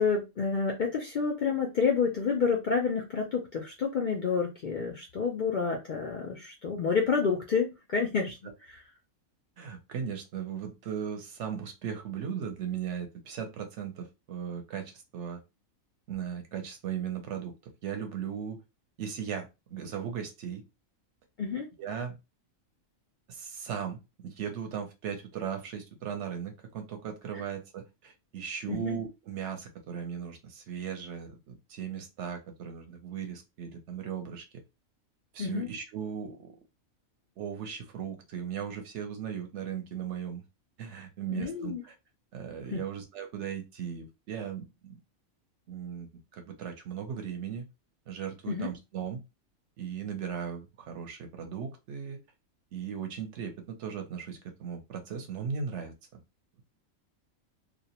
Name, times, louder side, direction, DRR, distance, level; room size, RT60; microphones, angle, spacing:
voice 1, 0.0-8.8 21.4-21.7 27.3-27.4 28.7-29.0 35.4-35.7 41.3-41.8 42.7-42.8 48.5-48.7, left 5 dB, 75° left, 0 dB, 0.4 m, -29 dB
voice 2, 9.6-15.4 16.1-18.6 19.0-20.6 21.8-22.2 23.3-34.4 35.3-36.5 37.4-40.4 40.8-41.9 42.3-45.0 45.7-46.1 46.3-47.7 48.1-49.2 49.8-52.2 52.7-56.2, right 8 dB, 65° right, 6 dB, 0.9 m, -37 dB
2.4 x 2.0 x 2.8 m, 0.25 s
omnidirectional pair, 1.4 m